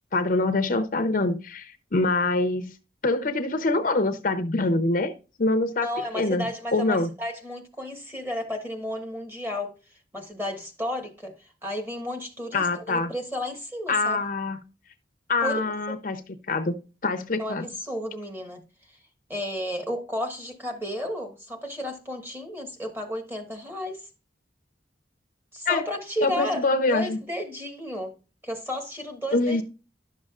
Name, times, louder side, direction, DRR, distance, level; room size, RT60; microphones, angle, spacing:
voice 1, 0.1-2.7 3.0-5.1 5.4-5.9 6.1-7.1 12.5-13.1 13.9-14.6 15.3-16.2 16.5-16.8 17.0-17.7 25.7-25.8 26.2-27.2 29.3-29.6, left 2 dB, 45° left, 0.6 m, -24 dB
voice 2, 5.8-9.7 10.1-14.2 15.4-15.6 15.9-16.0 17.4-18.6 19.3-24.0 25.5-28.1 28.4-29.6, left 1 dB, 10° right, 1.4 m, -33 dB
11.0 x 6.4 x 2.4 m
head